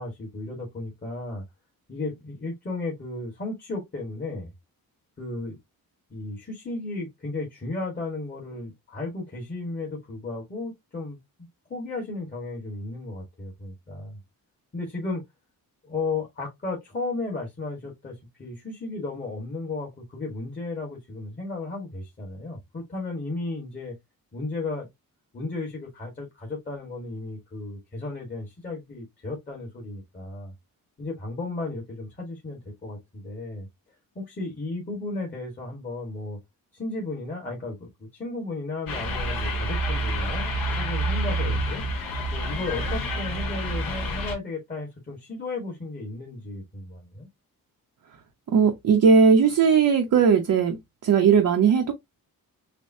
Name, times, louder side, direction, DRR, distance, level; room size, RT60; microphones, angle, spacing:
voice 1, 0.0-1.4 1.9-4.5 5.2-5.6 6.1-11.2 11.7-14.2 14.7-15.2 15.8-24.0 24.3-24.9 25.3-30.5 31.0-33.7 34.1-36.4 36.7-40.5 40.8-41.8 42.3-47.3, left 3 dB, 25° left, 1.6 m, -34 dB
sound 1, 38.9-44.4, right 1 dB, 70° left, 2.5 m, -28 dB
voice 2, 48.5-50.8 51.0-51.9, right 6 dB, 60° right, 0.8 m, -18 dB
6.7 x 2.2 x 2.7 m
wide cardioid pair, 160°, 36 cm